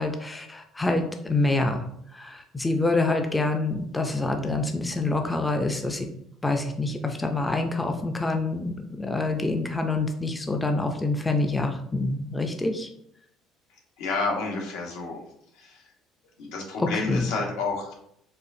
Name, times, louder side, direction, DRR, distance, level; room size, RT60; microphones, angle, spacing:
voice 1, 0.0-1.8 2.1-6.1 6.4-12.9 16.8-17.2, left 2 dB, 15° left, 4 dB, 0.4 m, -26 dB
voice 2, 14.0-15.2 15.5-15.9 16.4-17.9, left 3 dB, 85° left, -1 dB, 1.0 m, -30 dB
4.2 x 2.4 x 2.6 m, 0.72 s
cardioid pair, 110°, 0 cm